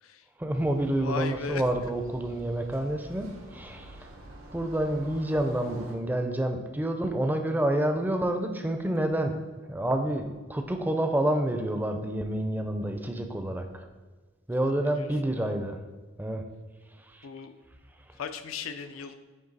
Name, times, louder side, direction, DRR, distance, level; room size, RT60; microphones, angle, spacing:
voice 1, 0.4-4.1 4.5-9.4 9.7-13.9 14.5-15.8 16.2-16.5 17.0-17.3 18.1-18.2, right 1 dB, 10° right, 5 dB, 0.4 m, -28 dB
sound 1, 0.5-5.9, right 1 dB, 85° right, 1.1 m, -48 dB
voice 2, 1.0-1.9 14.6-15.1 17.2-17.6 18.1-19.1, left 6 dB, 90° left, 9 dB, 0.5 m, -37 dB
9.0 x 3.1 x 4.0 m, 1.3 s
head